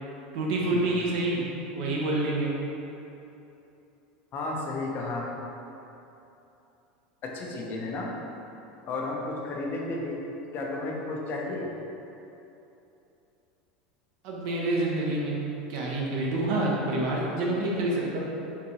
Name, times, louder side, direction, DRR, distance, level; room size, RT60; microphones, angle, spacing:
voice 1, 0.3-1.4 1.7-2.5 14.2-15.3 15.7-18.2, right 2 dB, 60° right, -3 dB, 0.7 m, -27 dB
voice 2, 4.3-5.3 7.2-8.1 8.9-10.2 10.5-11.7, left 2 dB, 45° left, -1 dB, 0.6 m, -33 dB
3.8 x 2.6 x 2.9 m, 2.9 s
hypercardioid pair, 90°, 5 cm